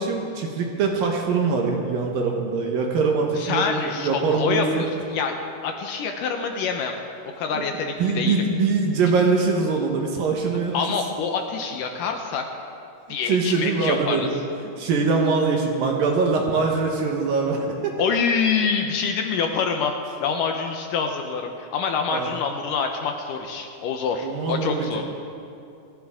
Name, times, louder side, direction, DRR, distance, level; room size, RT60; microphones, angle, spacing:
voice 1, 0.0-4.9 7.5-7.6 8.0-10.8 13.1-14.3 14.8-17.9 22.1-22.3 24.2-25.0, right 4 dB, 65° right, 1 dB, 2.7 m, -23 dB
voice 2, 3.4-7.0 7.4-8.5 10.7-12.5 13.1-14.3 18.0-25.0, left 5 dB, 80° left, 4 dB, 2.0 m, -26 dB
28.5 x 11.5 x 3.7 m, 2.5 s
omnidirectional pair, 4.8 m